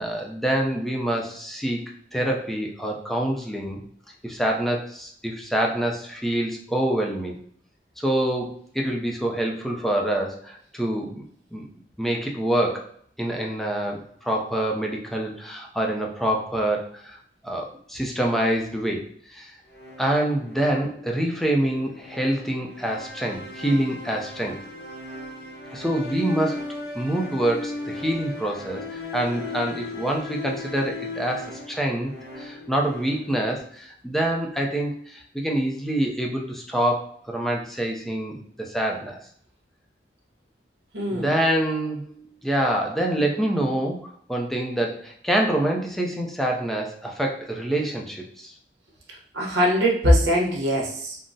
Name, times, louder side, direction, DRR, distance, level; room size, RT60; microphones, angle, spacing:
voice 1, 0.0-1.8 2.1-3.8 4.2-7.4 8.0-11.2 11.5-11.7 12.0-12.9 13.2-17.2 17.4-19.0 19.3-19.5 20.0-24.6 25.7-26.7 27.0-39.2 41.1-48.5, right 1 dB, ahead, 0 dB, 0.4 m, -26 dB
sound 1, 19.7-33.6, left 2 dB, 60° left, 0.7 m, -37 dB
voice 2, 40.9-41.4 49.3-51.2, equal, 75° right, -2 dB, 0.9 m, -21 dB
3.6 x 2.0 x 2.6 m, 0.62 s
head